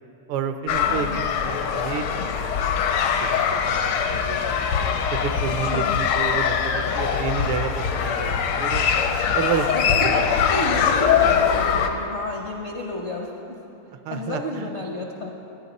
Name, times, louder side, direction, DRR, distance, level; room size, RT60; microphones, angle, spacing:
voice 1, 0.3-4.6 5.1-8.9 9.3-10.2 14.0-14.7, right 7 dB, 80° right, 8 dB, 1.5 m, -30 dB
sound 1, 0.7-11.9, left 7 dB, 75° left, 1.5 m, -22 dB
voice 2, 0.9-1.2 5.5-6.0 9.7-13.6 14.1-15.3, left 2 dB, 60° left, 0 dB, 0.7 m, -31 dB
15.5 x 10.5 x 4.1 m, 2.9 s
omnidirectional pair, 2.4 m